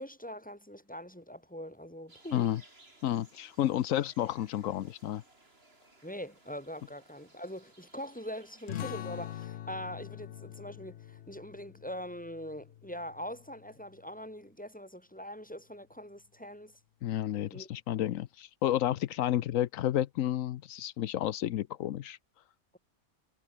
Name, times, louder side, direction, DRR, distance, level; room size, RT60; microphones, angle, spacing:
voice 1, 0.0-2.5 6.0-16.8 17.5-17.7, equal, 5° left, 5.1 m, -43 dB
sound 1, 2.1-9.5, right 2 dB, 50° right, 4.8 m, -61 dB
voice 2, 3.0-5.2 17.0-22.2, left 12 dB, 85° left, 1.1 m, -31 dB
sound 2, 8.7-13.9, left 11 dB, 65° left, 0.8 m, -44 dB
omnidirectional pair, 1.4 m